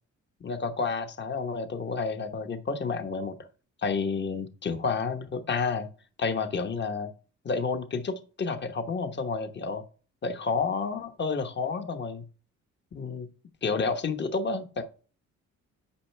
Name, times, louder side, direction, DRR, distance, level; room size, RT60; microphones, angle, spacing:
voice 1, 0.4-3.4 3.8-5.9 6.2-7.1 7.4-9.8 10.2-12.2 12.9-13.3 13.6-14.8, left 4 dB, 35° left, 1.1 m, -30 dB
8.6 x 5.5 x 3.3 m
cardioid pair, 90°, 30 cm